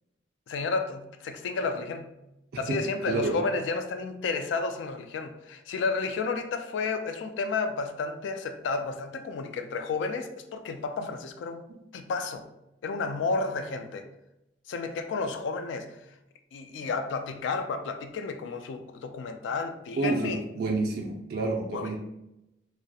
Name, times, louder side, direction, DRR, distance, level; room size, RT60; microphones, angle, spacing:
voice 1, 0.5-2.1 2.6-11.6 11.9-12.5 12.8-14.1 14.7-15.9 16.5-20.4 21.7-22.0, left 4 dB, 80° left, 7 dB, 0.3 m, -31 dB
voice 2, 3.1-3.4 11.7-11.8 20.0-22.0, right 3 dB, 55° right, 0 dB, 0.3 m, -29 dB
2.3 x 2.1 x 2.7 m, 0.88 s
head